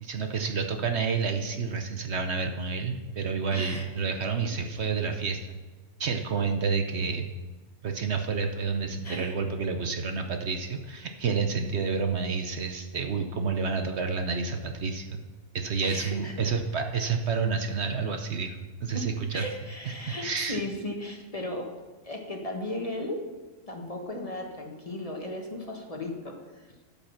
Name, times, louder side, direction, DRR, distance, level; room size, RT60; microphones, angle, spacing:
voice 1, 0.0-5.4 6.0-7.3 7.8-15.2 15.5-19.4 20.1-20.6, right 5 dB, 60° right, 5 dB, 1.0 m, -29 dB
voice 2, 3.5-3.9 9.0-9.4 15.8-16.6 18.9-19.1 19.3-21.7 22.0-23.2 23.7-26.8, left 1 dB, 30° left, 1 dB, 1.3 m, -36 dB
12.5 x 5.6 x 5.8 m, 1.2 s
omnidirectional pair, 1.4 m